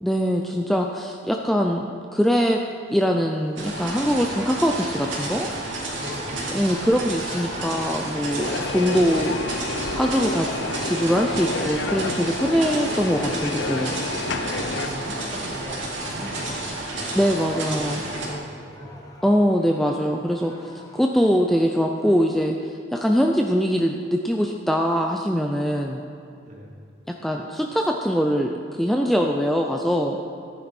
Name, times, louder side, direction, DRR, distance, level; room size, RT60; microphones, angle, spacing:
voice 1, 0.0-2.6 2.9-5.5 6.5-9.4 9.9-10.5 10.8-13.9 17.1-18.0 19.2-26.0 27.2-30.2, equal, ahead, 1 dB, 0.5 m, -22 dB
sound 1, 2.9-22.4, left 1 dB, 20° left, 1.2 m, -44 dB
sound 2, 3.6-18.3, right 2 dB, 80° right, 2.8 m, -31 dB
voice 2, 6.0-6.4 14.5-16.9 17.6-19.1 26.4-26.8, equal, 40° right, -2 dB, 2.1 m, -39 dB
sound 3, 8.4-14.9, left 3 dB, 70° left, 0.8 m, -30 dB
14.5 x 10.0 x 4.4 m, 2.6 s
head